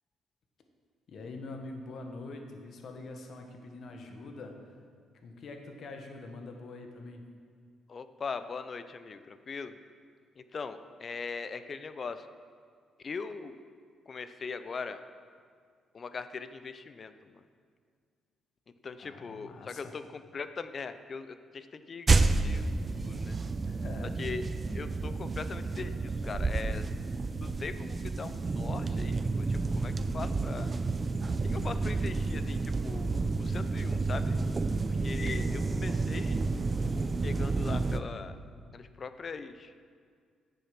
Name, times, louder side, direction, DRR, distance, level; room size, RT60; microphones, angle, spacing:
voice 1, 1.1-4.6 5.2-7.2 19.0-19.9 23.6-24.1, left 2 dB, 60° left, 4 dB, 1.4 m, -44 dB
voice 2, 7.9-9.7 10.4-12.3 13.0-13.6 14.1-15.0 15.9-17.4 18.8-22.8 23.0-23.4 24.2-24.5 24.7-26.8 27.4-30.7 31.4-34.4 34.8-36.4 37.2-38.4 38.7-39.7, left 5 dB, 40° left, 11 dB, 0.5 m, -40 dB
sound 1, 22.1-38.0, right 3 dB, 30° right, 0.5 m, -30 dB
9.3 x 7.1 x 5.9 m, 2.1 s
cardioid pair, 90°, 0 cm